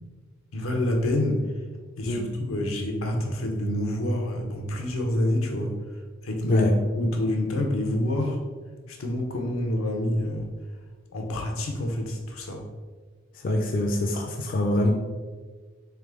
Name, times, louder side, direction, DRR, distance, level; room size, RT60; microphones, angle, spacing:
voice 1, 0.5-1.4 2.0-5.7 6.2-6.7 6.9-8.4 8.9-10.5 11.1-12.6, left 1 dB, 85° left, 2 dB, 0.7 m, -27 dB
voice 2, 13.3-14.9, left 1 dB, 45° left, 2 dB, 0.3 m, -24 dB
3.5 x 3.2 x 3.6 m, 1.4 s
head